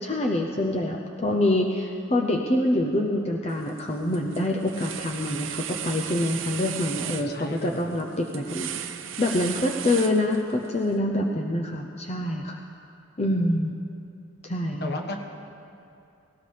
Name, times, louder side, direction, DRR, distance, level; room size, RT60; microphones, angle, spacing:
voice 1, 0.0-12.6 13.2-13.8 14.4-14.9, left 1 dB, 30° left, 1 dB, 0.6 m, -26 dB
sound 1, 3.5-3.8 4.1-10.7, right 9 dB, 75° right, 0.7 m, -35 dB
voice 2, 6.1-6.4 6.9-7.9 14.8-15.2, left 2 dB, 50° left, 3 dB, 1.4 m, -35 dB
18.0 x 17.5 x 3.4 m, 2.6 s
head